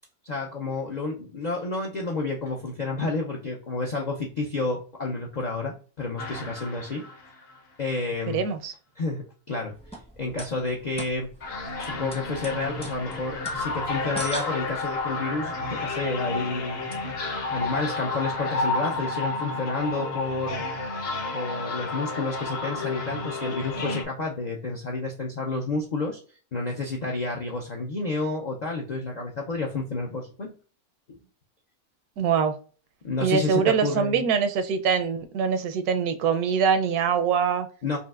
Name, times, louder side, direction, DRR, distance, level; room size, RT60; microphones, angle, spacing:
voice 1, 0.2-7.0 7.8-8.4 9.0-9.7 10.2-11.3 11.8-16.8 17.5-20.6 21.3-26.2 26.5-30.5 31.1-31.2 33.0-34.3 37.8-38.0, left 3 dB, 75° left, 0.4 m, -30 dB
sound 1, 6.2-7.6 11.4-24.0, left 3 dB, 55° left, 0.8 m, -31 dB
voice 2, 8.3-8.7 32.2-32.5 33.2-37.7, right 6 dB, 80° right, 1.1 m, -23 dB
sound 2, 9.7-15.1, equal, 5° left, 0.5 m, -41 dB
5.4 x 2.6 x 2.4 m
omnidirectional pair, 1.6 m